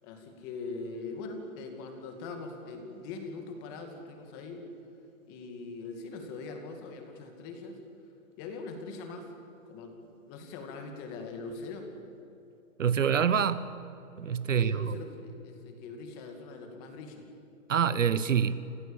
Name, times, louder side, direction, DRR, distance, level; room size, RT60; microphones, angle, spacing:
voice 1, 0.0-4.7 5.3-7.8 8.4-9.3 9.7-9.9 10.2-11.9 14.5-17.3, left 3 dB, 15° left, 4 dB, 2.3 m, -41 dB
voice 2, 12.8-13.6 14.2-15.0 17.7-18.7, right 7 dB, 60° right, 15 dB, 1.2 m, -26 dB
29.0 x 18.0 x 8.9 m, 2.9 s
hypercardioid pair, 170°, 43 cm